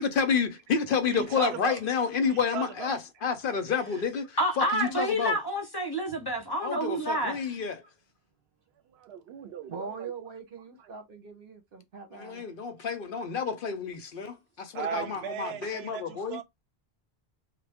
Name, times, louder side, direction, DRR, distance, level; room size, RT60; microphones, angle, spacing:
voice 1, 0.0-5.4 6.6-7.8 12.1-16.4, left 6 dB, 60° left, 0.7 m, -29 dB
voice 2, 1.1-1.8 2.3-3.0 8.9-10.1 14.7-16.4, right 9 dB, 85° right, 0.8 m, -37 dB
voice 3, 4.4-7.4, right 1 dB, 25° left, 0.7 m, -28 dB
voice 4, 9.7-12.5 15.9-16.0, right 5 dB, 65° right, 1.1 m, -42 dB
3.2 x 2.1 x 3.4 m
omnidirectional pair, 1.0 m